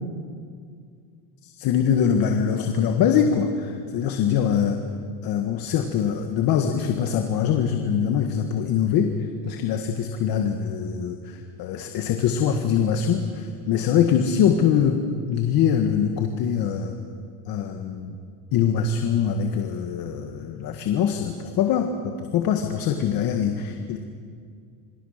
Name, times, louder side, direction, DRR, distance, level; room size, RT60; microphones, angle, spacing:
voice 1, 1.4-4.8 5.2-15.0 15.3-16.9 17.5-18.2 18.5-24.0, left 8 dB, 45° left, 5 dB, 1.7 m, -23 dB
27.0 x 24.5 x 6.7 m, 2.2 s
cardioid pair, 160°, 49 cm